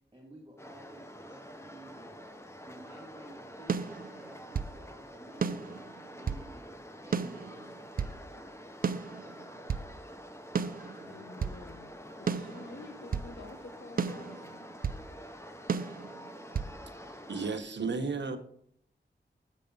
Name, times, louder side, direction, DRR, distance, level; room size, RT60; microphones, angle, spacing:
voice 1, 0.1-2.2 2.6-5.8 6.2-8.8, right 1 dB, 15° right, 2.3 m, -53 dB
sound 1, 0.6-17.6, equal, 15° left, 0.9 m, -48 dB
sound 2, 3.7-4.8 5.4-6.5 7.1-8.2 8.8-9.9 10.5-11.6 12.3-13.3 14.0-15.1 15.7-16.7, right 6 dB, 50° right, 0.4 m, -34 dB
voice 2, 11.1-11.9 12.2-14.5, left 3 dB, 65° left, 1.1 m, -48 dB
voice 3, 17.3-18.4, right 4 dB, 65° right, 0.9 m, -33 dB
7.0 x 6.6 x 5.3 m
wide cardioid pair, 75°, 20 cm